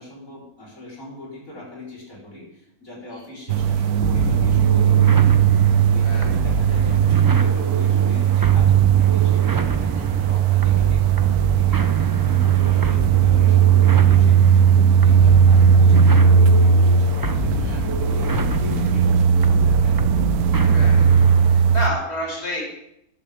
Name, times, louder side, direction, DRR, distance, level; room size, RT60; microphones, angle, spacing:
voice 1, 0.0-5.3 5.5-20.0, left 2 dB, 65° left, -5 dB, 4.9 m, -40 dB
sound 1, 3.5-21.9, right 7 dB, 85° right, 1.2 m, -17 dB
sound 2, 4.0-21.6, right 3 dB, 30° right, 0.3 m, -27 dB
voice 2, 6.0-6.3 12.7-12.8 17.4-17.8 20.7-22.6, left 1 dB, 25° left, -6 dB, 4.4 m, -30 dB
14.0 x 12.0 x 3.6 m, 0.76 s
omnidirectional pair, 1.5 m